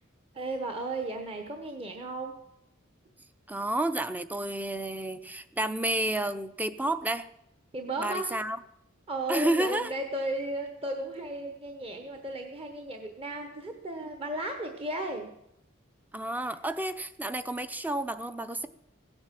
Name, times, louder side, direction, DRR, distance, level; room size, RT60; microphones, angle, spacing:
voice 1, 0.3-2.4 7.7-8.4 9.1-15.3, right 1 dB, 25° right, 5 dB, 1.1 m, -35 dB
voice 2, 3.5-7.3 8.0-8.6 9.3-9.9 16.1-18.7, right 1 dB, 10° right, 12 dB, 0.6 m, -30 dB
16.5 x 8.9 x 7.5 m, 0.81 s
head